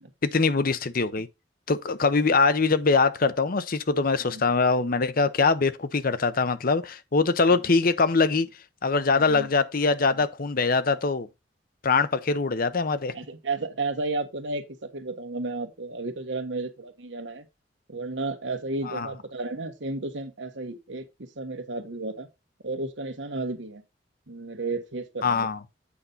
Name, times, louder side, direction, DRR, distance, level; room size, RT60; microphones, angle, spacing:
voice 1, 0.2-1.3 1.7-8.5 8.8-11.3 11.8-13.1 18.8-19.1 25.2-25.6, left 4 dB, 55° left, 0.7 m, -23 dB
voice 2, 9.1-9.5 13.1-14.6 14.9-17.4 17.9-22.3 22.6-23.8 24.3-25.5, right 3 dB, 90° right, 1.4 m, -33 dB
8.6 x 5.5 x 3.9 m
head